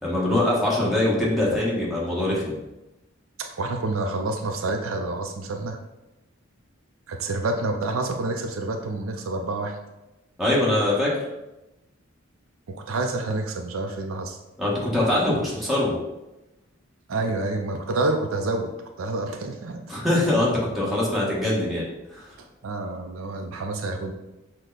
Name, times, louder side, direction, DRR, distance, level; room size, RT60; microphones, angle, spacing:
voice 1, 0.0-2.5 10.4-11.1 14.6-15.9 19.9-21.8 22.1-22.3, left 1 dB, ahead, -7 dB, 1.3 m, -23 dB
voice 2, 3.4-5.8 7.1-9.8 12.7-14.4 17.1-18.7 19.0-19.8 22.4-24.1, right 2 dB, 80° right, 4 dB, 0.5 m, -28 dB
6.4 x 2.2 x 3.9 m, 0.98 s
head